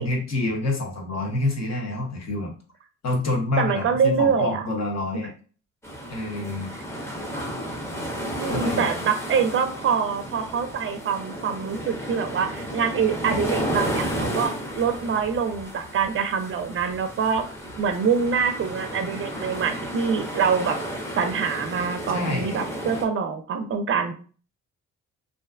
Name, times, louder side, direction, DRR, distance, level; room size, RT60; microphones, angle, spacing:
voice 1, 0.0-2.5 3.0-5.3 6.1-6.7 8.5-9.1 22.1-22.6, left 2 dB, 60° left, 1 dB, 0.9 m, -27 dB
voice 2, 3.6-4.6 8.4-17.4 17.8-20.8 21.2-24.1, right 6 dB, 45° right, 7 dB, 0.4 m, -25 dB
sound 1, 5.8-23.1, equal, 10° left, 0.6 m, -32 dB
2.5 x 2.1 x 2.4 m, 0.39 s
cardioid pair, 90°, 30 cm